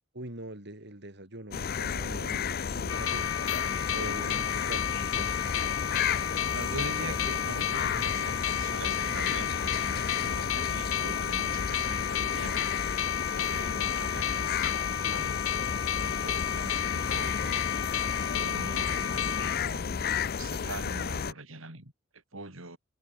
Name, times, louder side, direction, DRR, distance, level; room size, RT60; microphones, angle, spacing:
voice 1, 0.1-3.3 3.9-5.3, right 1 dB, 55° right, 4.3 m, -43 dB
sound 1, 1.5-21.3, left 6 dB, 50° left, 0.5 m, -33 dB
sound 2, 2.9-19.6, left 9 dB, 80° left, 0.8 m, -32 dB
voice 2, 6.5-12.7 13.3-15.4 16.0-17.6 18.3-22.8, right 2 dB, 85° right, 6.5 m, -43 dB
head